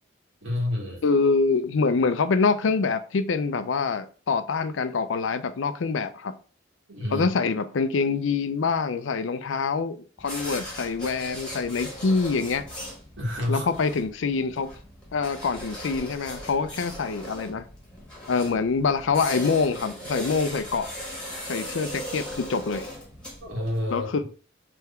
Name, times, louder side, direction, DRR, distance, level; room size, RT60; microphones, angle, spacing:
voice 1, 0.4-1.0 6.9-7.3 13.2-13.7 23.4-24.1, left 1 dB, 90° right, 2.1 m, -28 dB
voice 2, 1.0-6.3 7.1-12.6 13.5-14.7 15.1-17.6 18.3-20.9 21.4-22.9 23.9-24.2, left 4 dB, 80° left, 0.5 m, -25 dB
sound 1, 10.2-24.0, equal, 5° left, 1.3 m, -39 dB
3.6 x 3.4 x 4.3 m
head